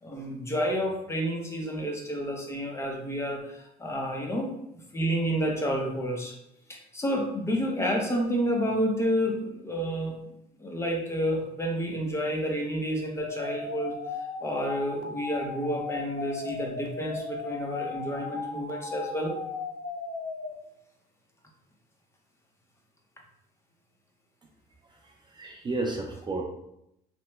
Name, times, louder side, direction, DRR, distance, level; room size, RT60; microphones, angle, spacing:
voice 1, 0.0-4.5 4.9-6.3 6.7-10.2 10.6-13.9 14.4-19.3, equal, 15° left, 0 dB, 0.6 m, -30 dB
sound 1, 13.2-20.5, left 4 dB, 60° left, 0.5 m, -36 dB
voice 2, 25.0-26.4, right 2 dB, 25° right, 0 dB, 0.4 m, -32 dB
2.9 x 2.1 x 3.1 m, 0.80 s
cardioid pair, 110°, 17 cm